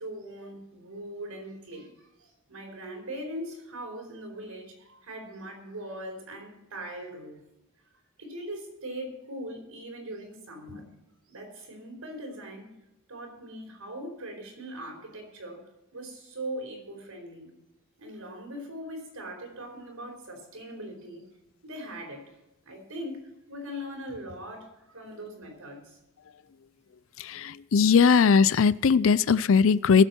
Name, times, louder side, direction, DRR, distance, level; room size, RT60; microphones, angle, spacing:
voice 1, 0.0-7.4 8.2-10.9 11.3-12.7 13.1-17.5 18.0-21.3 21.6-22.3 22.6-26.0, right 1 dB, 85° right, 2 dB, 4.7 m, -40 dB
voice 2, 27.2-30.0, left 5 dB, 65° left, 18 dB, 0.4 m, -20 dB
20.0 x 8.0 x 4.5 m, 0.92 s
head